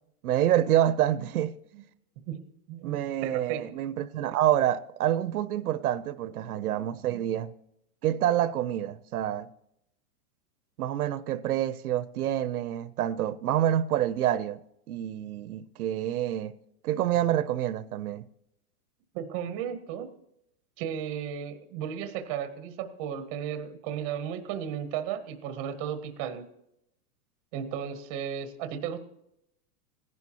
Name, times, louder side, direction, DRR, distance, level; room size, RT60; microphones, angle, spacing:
voice 1, 0.2-1.5 2.8-7.5 8.0-9.5 10.8-14.6 14.9-16.6 16.8-18.2, right 12 dB, 70° right, 0.7 m, -27 dB
voice 2, 2.7-3.6 19.1-20.1 20.8-26.4 27.5-29.0, right 9 dB, 20° right, 0.7 m, -35 dB
17.5 x 11.0 x 2.8 m
supercardioid pair, 165°, 46 cm